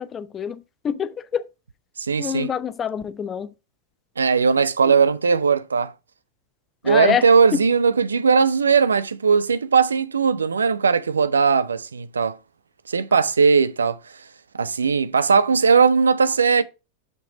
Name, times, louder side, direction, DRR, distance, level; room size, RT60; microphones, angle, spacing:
voice 1, 0.0-1.5 2.2-3.5 4.8-4.9 6.8-7.6, left 8 dB, 25° left, 0.6 m, -26 dB
voice 2, 2.0-2.5 4.2-5.9 6.8-12.4 12.9-14.0 14.6-16.6, right 5 dB, 75° right, 0.4 m, -18 dB
6.7 x 5.7 x 3.7 m
figure-of-eight pair, 90°, 0 cm